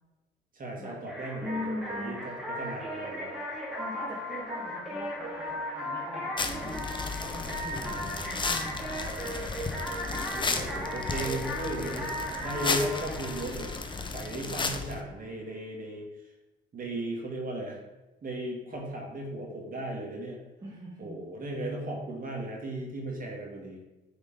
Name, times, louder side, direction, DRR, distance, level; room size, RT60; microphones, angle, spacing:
voice 1, 0.5-3.4 7.8-8.5 9.0-9.7 10.1-12.1 12.4-13.7 14.1-16.1 16.7-17.8 18.2-20.4 21.0-23.8, right 1 dB, 45° right, 0 dB, 2.0 m, -36 dB
sound 1, 1.1-14.5, left 1 dB, ahead, 2.0 m, -37 dB
voice 2, 1.4-2.2 3.8-9.0 14.5-14.7 20.6-21.2, left 1 dB, 20° right, -4 dB, 1.5 m, -41 dB
sound 2, 6.4-15.0, left 3 dB, 25° left, 0.7 m, -34 dB
8.9 x 3.9 x 3.7 m, 1.0 s
cardioid pair, 90°, 20 cm